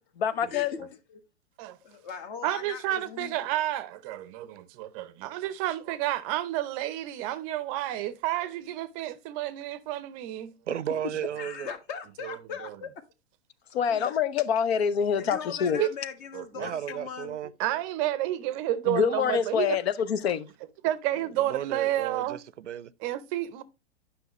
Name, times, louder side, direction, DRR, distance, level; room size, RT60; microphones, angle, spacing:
voice 1, 0.2-0.7 13.7-15.8 18.9-20.5, left 7 dB, 60° left, 0.7 m, -26 dB
voice 2, 1.8-3.5 11.4-12.9 13.9-14.1 15.2-17.4, left 6 dB, 45° left, 1.5 m, -39 dB
voice 3, 2.4-10.5 12.2-12.4 12.6-12.7 13.9-14.0 15.7-15.9 16.3-16.7 17.6-19.8 20.8-22.4 23.0-23.6, right 14 dB, 30° right, 0.6 m, -30 dB
voice 4, 10.7-11.7 16.5-17.5 21.4-22.9, right 10 dB, 80° right, 0.6 m, -34 dB
9.9 x 5.6 x 3.0 m
hypercardioid pair, 115°, 35 cm